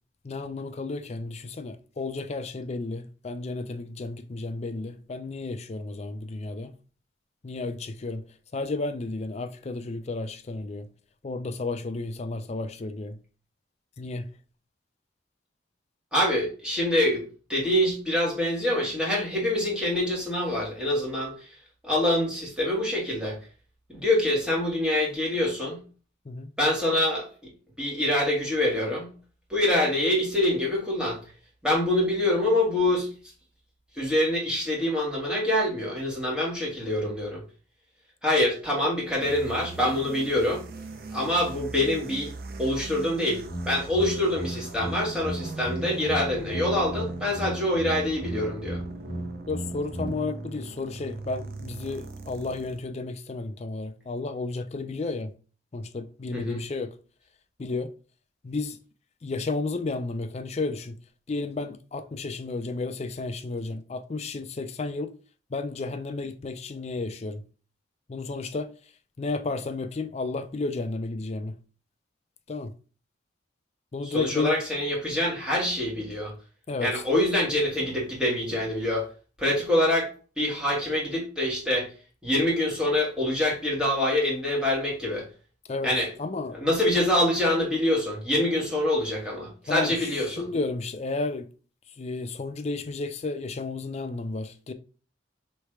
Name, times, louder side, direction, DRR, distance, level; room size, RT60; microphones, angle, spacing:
voice 1, 0.2-6.7 7.4-8.2 8.5-10.9 11.2-13.2 14.0-14.3 26.2-26.5 49.5-55.3 55.7-56.9 57.6-57.9 58.4-58.8 59.2-61.0 61.3-65.1 65.5-67.4 68.1-71.6 72.5-72.7 73.9-74.6 76.7-77.0 85.7-85.9 86.2-86.6 89.7-91.5 91.9-94.7, left 3 dB, 35° left, 0.4 m, -32 dB
voice 2, 16.1-17.2 17.5-21.5 21.8-23.4 23.9-25.8 26.6-27.3 27.8-29.1 29.5-31.2 31.6-33.1 33.9-37.4 38.2-40.6 41.1-42.3 42.6-48.8 56.3-56.6 74.0-76.3 76.8-79.1 79.4-80.1 80.4-81.9 82.2-85.3 85.8-86.1 86.6-90.4, left 1 dB, 5° right, 1.5 m, -25 dB
sound 1, 39.2-52.9, right 3 dB, 50° right, 0.6 m, -41 dB
sound 2, 43.4-50.1, right 1 dB, 25° right, 1.3 m, -35 dB
3.2 x 3.2 x 4.6 m
head